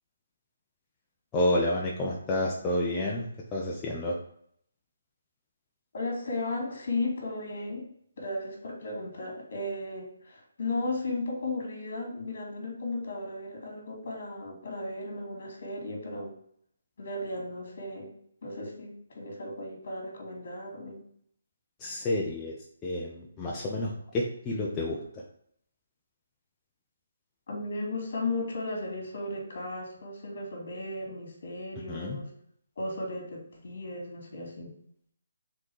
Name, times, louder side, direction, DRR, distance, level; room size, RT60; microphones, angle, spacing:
voice 1, 1.3-4.2 21.8-22.5 22.8-25.2 31.9-32.2, left 1 dB, 15° left, -3 dB, 0.8 m, -30 dB
voice 2, 5.9-7.9 8.2-16.3 17.0-18.1 18.4-21.0 27.5-32.3 32.8-34.7, left 2 dB, 55° left, 1 dB, 2.5 m, -35 dB
6.1 x 3.8 x 4.8 m, 0.67 s
hypercardioid pair, 160°, 0 cm